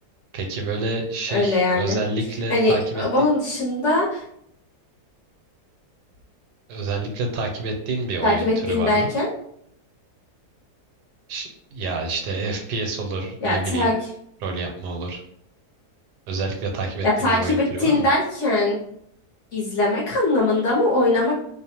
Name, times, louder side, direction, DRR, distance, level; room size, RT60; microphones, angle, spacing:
voice 1, 0.3-3.0 6.7-9.1 11.3-13.9 14.4-15.2 16.3-18.0, right 3 dB, 85° right, 3 dB, 1.2 m, -28 dB
voice 2, 1.3-2.0 2.5-4.2 8.2-9.3 13.4-13.9 17.0-18.8 19.5-21.4, left 2 dB, 60° left, -5 dB, 0.8 m, -21 dB
2.7 x 2.1 x 2.8 m, 0.71 s
omnidirectional pair, 1.7 m